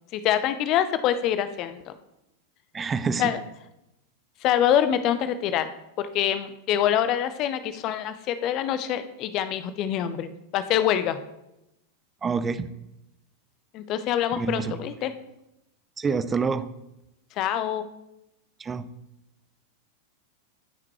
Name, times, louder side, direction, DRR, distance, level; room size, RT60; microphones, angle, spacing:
voice 1, 0.1-1.9 2.8-2.9 3.2-3.4 4.4-5.7 6.0-11.2 13.7-15.1 17.4-17.9, left 10 dB, 40° left, 11 dB, 0.7 m, -25 dB
voice 2, 2.7-3.3 12.2-12.7 14.4-14.8 16.0-16.7 18.6-18.8, right 5 dB, 20° right, 13 dB, 0.5 m, -27 dB
13.5 x 5.9 x 3.1 m, 0.88 s
figure-of-eight pair, 90°, 0 cm